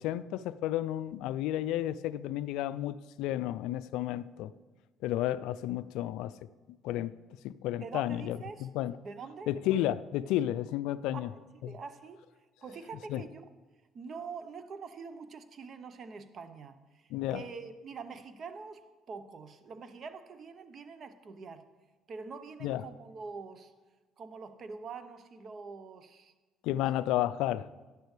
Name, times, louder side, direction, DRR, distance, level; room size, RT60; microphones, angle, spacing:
voice 1, 0.0-4.5 5.0-6.3 6.7-7.1 7.4-8.9 9.5-11.3 11.6-11.7 13.1-13.2 17.1-17.4 22.6-22.8 26.6-27.7, left 13 dB, 75° left, 16 dB, 0.3 m, -32 dB
voice 2, 7.8-8.7 9.0-9.5 11.1-12.2 12.6-13.5 13.9-21.6 22.1-23.7 24.2-26.3 26.8-27.0, right 5 dB, 50° right, 11 dB, 0.8 m, -45 dB
11.0 x 10.5 x 3.3 m, 1.2 s
hypercardioid pair, 65°, 0 cm